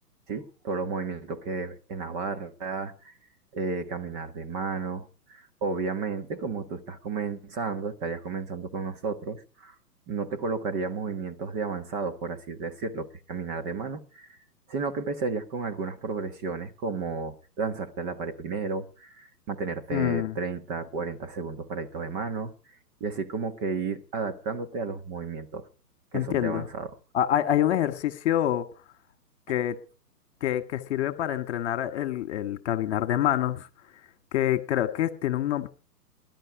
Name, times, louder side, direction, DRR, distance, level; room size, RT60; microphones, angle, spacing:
voice 1, 0.3-3.1 3.5-9.7 10.1-14.4 14.7-22.5 23.0-25.7 26.1-26.9, right 4 dB, 25° right, 1.5 m, -32 dB
voice 2, 19.9-20.3 26.1-26.6 27.1-28.6 29.5-29.8 30.4-33.7 34.3-35.7, left 11 dB, 45° left, 1.8 m, -26 dB
19.5 x 11.0 x 4.9 m
hypercardioid pair, 140°, 48 cm